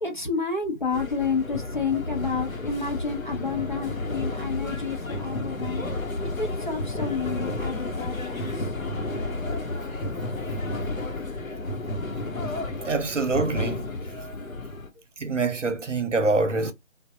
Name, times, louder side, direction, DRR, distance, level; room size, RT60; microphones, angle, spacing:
voice 1, 0.0-8.7, left 5 dB, 35° left, 0.8 m, -30 dB
sound 1, 0.9-14.9, left 2 dB, 85° left, 1.0 m, -31 dB
voice 2, 12.8-13.9 15.2-16.7, right 3 dB, 60° right, 0.8 m, -25 dB
3.4 x 2.3 x 2.6 m
figure-of-eight pair, 165°, 40 cm